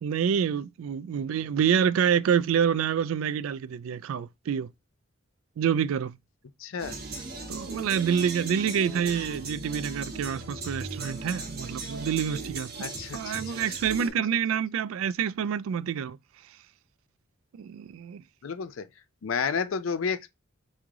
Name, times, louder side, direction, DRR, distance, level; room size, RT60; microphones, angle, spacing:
voice 1, 0.0-4.7 5.6-6.2 7.5-12.7 13.1-16.2 17.5-18.2, right 8 dB, 85° right, 0.3 m, -27 dB
voice 2, 6.6-7.0 12.8-13.6 18.4-18.9 19.2-20.3, left 6 dB, 75° left, 0.5 m, -31 dB
sound 1, 6.8-14.1, right 3 dB, 50° right, 1.1 m, -37 dB
3.6 x 3.1 x 3.7 m
head